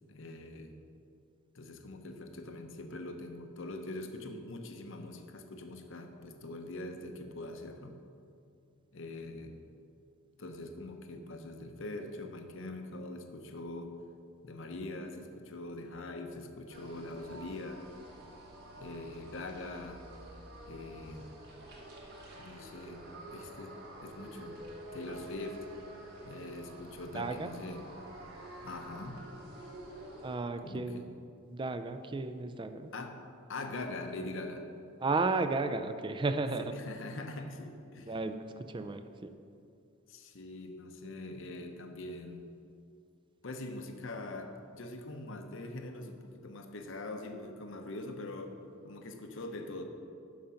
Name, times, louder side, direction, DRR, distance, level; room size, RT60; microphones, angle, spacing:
voice 1, 0.1-0.8 1.5-8.0 8.9-9.6 10.4-14.0 14.4-17.9 18.8-20.0 20.6-21.4 22.4-23.0 23.3-24.6 24.9-25.7 26.2-27.9 28.6-29.2 30.6-31.1 32.9-33.2 33.5-34.7 36.6-38.1 38.8-38.9 40.1-42.4 43.4-48.6 48.8-49.8, left 2 dB, 65° left, 5 dB, 0.8 m, -43 dB
sound 1, 16.7-30.4, right 1 dB, 50° right, 1.3 m, -49 dB
voice 2, 27.1-27.5 30.2-31.0 31.5-32.9 35.0-36.7 38.1-39.3, right 3 dB, 25° right, 9 dB, 0.4 m, -33 dB
11.5 x 5.1 x 5.7 m, 2.5 s
head